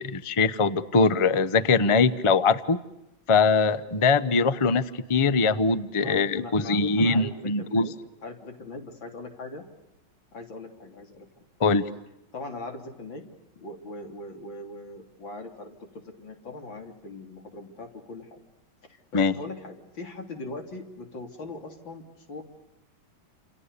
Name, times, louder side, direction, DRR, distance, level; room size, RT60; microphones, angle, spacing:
voice 1, 0.0-2.8 3.3-4.8 5.1-7.9 11.6-11.8 19.1-19.3, left 4 dB, 25° left, 14 dB, 0.7 m, -22 dB
voice 2, 6.0-7.9 8.2-9.7 10.3-11.4 12.3-13.2 13.6-18.4 18.8-22.4, left 2 dB, 85° left, 4 dB, 4.1 m, -40 dB
29.0 x 28.0 x 6.9 m, 0.88 s
omnidirectional pair, 2.0 m